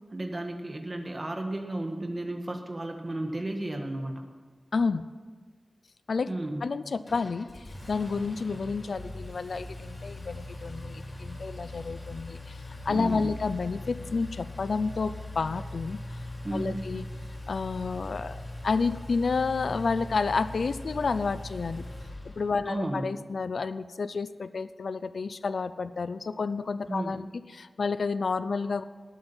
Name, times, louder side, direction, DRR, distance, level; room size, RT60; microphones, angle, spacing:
voice 1, 0.1-4.2 6.2-6.6 12.9-13.3 16.4-16.8 22.6-23.0 26.9-27.2, right 1 dB, 35° right, 4 dB, 1.6 m, -33 dB
voice 2, 4.7-5.0 6.1-6.3 6.6-16.2 16.5-17.1 17.5-21.9 22.2-28.8, left 4 dB, 80° left, 14 dB, 0.5 m, -30 dB
Engine, 7.1-22.8, left 1 dB, 45° left, 4.0 m, -41 dB
19.0 x 8.5 x 5.6 m, 1.5 s
wide cardioid pair, 70°, 0 cm